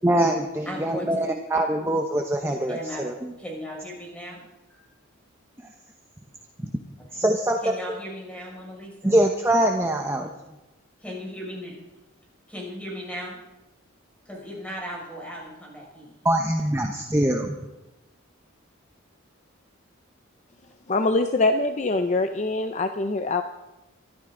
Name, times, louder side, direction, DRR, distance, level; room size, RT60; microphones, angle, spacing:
voice 1, 0.0-3.3 7.1-7.6 7.9-8.0 9.0-10.3 16.2-17.5, right 1 dB, 15° right, 3 dB, 0.9 m, -23 dB
voice 2, 0.7-1.3 2.7-4.4 4.7-4.9 7.1-7.2 7.6-9.1 11.0-11.7 12.5-13.4 14.3-16.2, equal, 5° left, -3 dB, 5.9 m, -37 dB
voice 3, 20.9-23.4, left 2 dB, 35° left, 7 dB, 0.6 m, -23 dB
24.5 x 13.0 x 3.9 m, 1.0 s
head